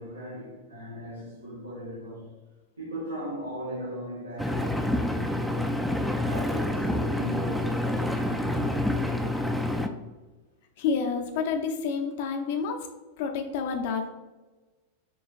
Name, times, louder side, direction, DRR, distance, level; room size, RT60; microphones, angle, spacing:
voice 1, 0.0-2.4 2.8-5.9 6.2-9.0, right 1 dB, 80° right, 0.9 m, -38 dB
Engine, 4.4-9.9, left 1 dB, ahead, 0.3 m, -27 dB
voice 2, 10.8-12.9 13.2-14.1, left 5 dB, 50° left, 0.6 m, -29 dB
6.3 x 3.1 x 2.5 m
figure-of-eight pair, 90°, 0 cm